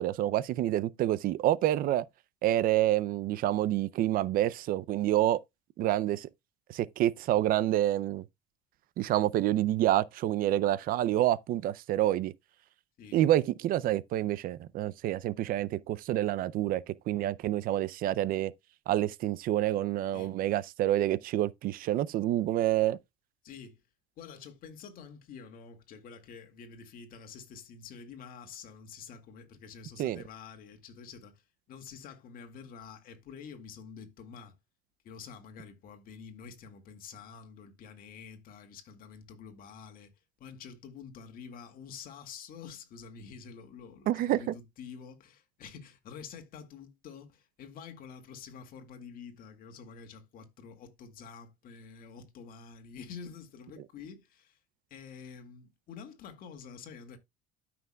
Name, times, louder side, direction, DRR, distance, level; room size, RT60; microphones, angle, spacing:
voice 1, 0.0-2.0 2.4-5.4 5.8-6.3 6.7-8.2 9.0-12.3 13.1-18.5 18.9-23.0 30.0-30.2 44.1-44.5, right 13 dB, 45° right, 0.5 m, -28 dB
voice 2, 23.4-23.8 24.2-31.4 31.7-34.6 35.0-40.1 40.4-54.6 54.9-57.2, left 6 dB, 45° left, 2.0 m, -48 dB
13.0 x 5.9 x 2.3 m
cardioid pair, 145°, 21 cm